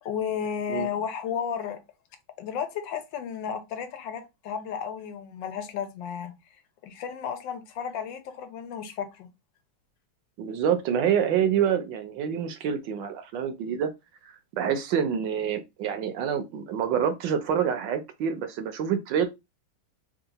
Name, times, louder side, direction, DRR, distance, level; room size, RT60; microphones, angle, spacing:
voice 1, 0.0-1.8 2.4-6.3 6.8-9.3, left 7 dB, 75° left, 1.4 m, -33 dB
voice 2, 10.4-13.9 14.5-19.3, right 8 dB, 75° right, 1.3 m, -27 dB
3.7 x 2.4 x 3.9 m
omnidirectional pair, 2.1 m